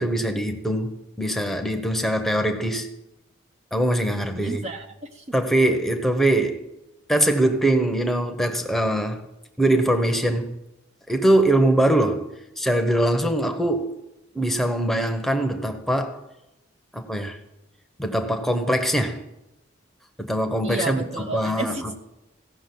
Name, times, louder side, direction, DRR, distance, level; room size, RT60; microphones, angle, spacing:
voice 1, 0.0-2.9 3.7-4.6 5.3-6.6 7.1-9.2 9.6-10.5 11.1-12.3 12.6-14.0 14.3-16.2 16.9-17.4 18.0-19.2 20.2-21.0 21.3-21.7, right 1 dB, ahead, 0.8 m, -22 dB
voice 2, 4.3-5.2 20.6-21.9, right 2 dB, 30° right, 0.6 m, -32 dB
16.0 x 6.2 x 7.7 m
head